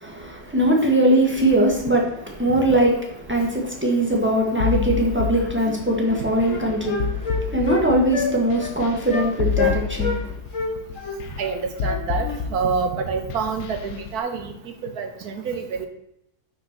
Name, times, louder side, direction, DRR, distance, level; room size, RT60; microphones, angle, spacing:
voice 1, 0.0-2.1 2.4-10.4, right 1 dB, 10° right, -1 dB, 1.6 m, -21 dB
sound 1, 4.6-14.1, left 7 dB, 75° left, 1.2 m, -29 dB
Wind instrument woodwind instrument, 5.6-5.8 6.1-7.8 8.1-8.3 8.6-8.7 9.1-9.3 9.6-10.2 10.5-12.4, left 4 dB, 55° left, 1.7 m, -27 dB
voice 2, 11.4-14.5 14.8-15.9, right 5 dB, 80° right, 6 dB, 1.5 m, -27 dB
6.1 x 5.4 x 6.1 m, 0.79 s
omnidirectional pair, 1.6 m